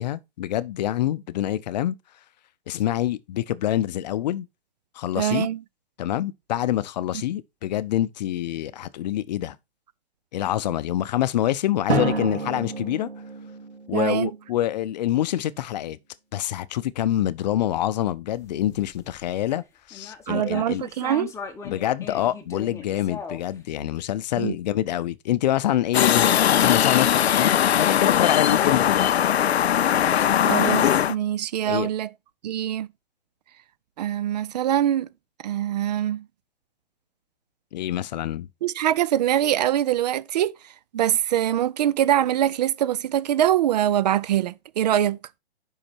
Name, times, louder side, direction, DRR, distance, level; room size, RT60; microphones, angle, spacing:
voice 1, 0.0-1.9 2.7-4.5 4.9-5.5 6.0-9.6 10.3-13.1 13.9-16.0 16.3-20.8 21.6-29.2 31.6-31.9 37.7-38.5, left 12 dB, 45° left, 0.6 m, -26 dB
voice 2, 5.2-5.6 13.9-14.3 20.3-21.3 24.4-24.5 30.5-32.1 32.4-32.9 34.0-35.1 35.4-36.2 38.6-40.6 40.9-45.2, right 11 dB, 45° right, 0.5 m, -23 dB
Drum, 11.9-14.6, right 2 dB, 90° right, 3.8 m, -29 dB
sound 1, 18.3-19.5 19.9-23.6, left 6 dB, 10° left, 1.1 m, -38 dB
sound 2, 25.9-31.1, left 10 dB, 80° left, 0.6 m, -20 dB
8.6 x 5.7 x 4.3 m
hypercardioid pair, 135°, 31 cm